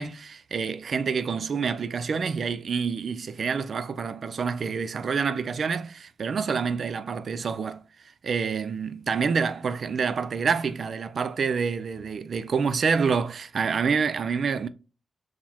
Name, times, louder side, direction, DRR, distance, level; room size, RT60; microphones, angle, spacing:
voice 1, 0.0-7.8 8.2-14.7, right 5 dB, 60° right, 0.3 m, -27 dB
3.9 x 3.1 x 4.1 m
cardioid pair, 85°, 0 cm